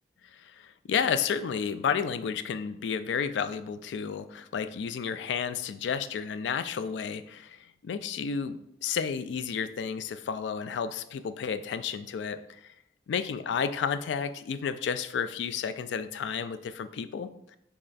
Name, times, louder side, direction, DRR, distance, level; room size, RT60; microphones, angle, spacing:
voice 1, 0.2-12.7 13.1-17.3, left 6 dB, 75° left, 11 dB, 0.3 m, -32 dB
3.5 x 3.3 x 3.9 m, 0.76 s
head